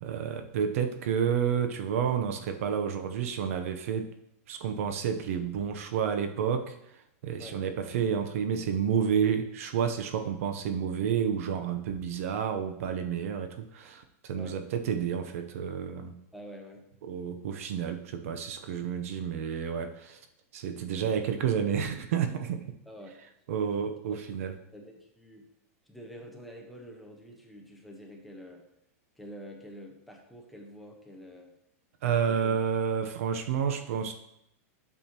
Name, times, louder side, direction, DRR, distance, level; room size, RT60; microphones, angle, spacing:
voice 1, 0.0-4.1 4.5-6.7 7.2-16.2 17.0-20.2 20.5-22.6 23.5-24.5 32.0-34.1, right 7 dB, 65° right, 7 dB, 0.7 m, -30 dB
voice 2, 16.3-16.9 22.9-23.1 23.6-24.3 24.7-25.4 25.9-28.6 29.2-31.5 32.3-32.6, equal, ahead, 1 dB, 1.0 m, -47 dB
9.0 x 6.3 x 2.9 m, 0.78 s
supercardioid pair, 155°, 8 cm